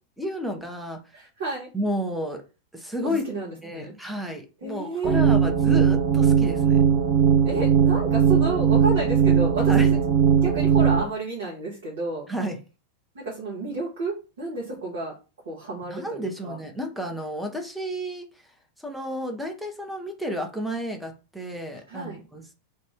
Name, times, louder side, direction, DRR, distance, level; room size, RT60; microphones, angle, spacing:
voice 1, 0.2-1.0 1.7-2.4 2.7-3.2 3.6-6.8 9.7-9.9 12.3-12.6 15.9-18.3 18.8-22.5, equal, ahead, 3 dB, 0.7 m, -31 dB
voice 2, 1.1-1.7 3.0-3.9 4.6-5.2 7.4-10.0 10.4-12.3 13.1-15.2 15.4-16.6 21.9-22.2, right 3 dB, 60° right, -4 dB, 1.1 m, -31 dB
sound 1, 5.0-11.0, right 7 dB, 40° right, 0.4 m, -19 dB
2.6 x 2.5 x 3.5 m, 0.31 s
figure-of-eight pair, 90°, 0 cm